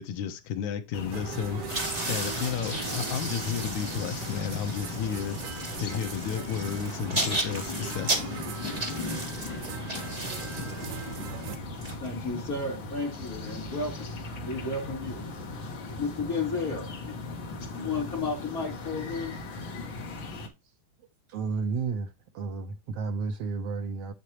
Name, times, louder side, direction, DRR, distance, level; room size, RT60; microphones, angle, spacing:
voice 1, 0.0-1.7 2.1-5.4 5.8-8.3, left 8 dB, 75° left, 2.3 m, -32 dB
sound 1, 0.9-20.5, left 2 dB, 50° left, 1.8 m, -38 dB
sound 2, 1.1-11.6, right 8 dB, 90° right, 2.7 m, -41 dB
sound 3, 1.7-12.6, right 2 dB, 20° right, 1.1 m, -35 dB
voice 2, 12.0-14.1 14.4-15.2 16.0-16.9 17.7-19.3, left 3 dB, 25° left, 4.2 m, -32 dB
voice 3, 21.3-24.1, right 4 dB, 70° right, 1.6 m, -32 dB
8.2 x 8.2 x 3.0 m
omnidirectional pair, 3.5 m